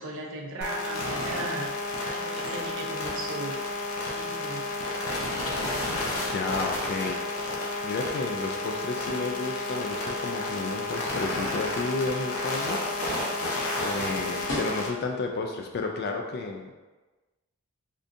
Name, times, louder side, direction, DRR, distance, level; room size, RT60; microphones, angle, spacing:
voice 1, 0.0-3.6 4.0-4.7, right 2 dB, 65° right, 0 dB, 0.5 m, -37 dB
sound 1, 0.6-14.9, left 2 dB, 90° left, 0.7 m, -31 dB
voice 2, 6.2-7.2 7.8-12.8 13.8-16.7, left 3 dB, 50° left, 2 dB, 0.3 m, -32 dB
sound 2, 12.3-15.2, left 1 dB, 65° left, 1.0 m, -44 dB
3.5 x 2.6 x 2.6 m, 1.2 s
head